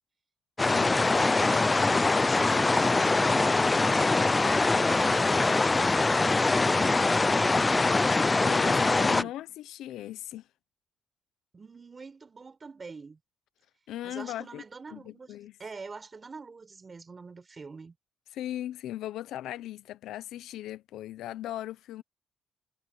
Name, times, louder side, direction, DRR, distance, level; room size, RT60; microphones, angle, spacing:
sound 1, 0.6-9.2, left 3 dB, 20° left, 0.5 m, -23 dB
voice 1, 0.8-7.9 8.6-9.3 11.5-13.2 14.0-15.3 15.6-18.0, right 4 dB, 30° right, 4.3 m, -44 dB
voice 2, 8.4-10.5 13.9-14.6 14.9-15.6 18.3-22.0, left 13 dB, 85° left, 0.7 m, -38 dB
cardioid pair, 90°, 0 cm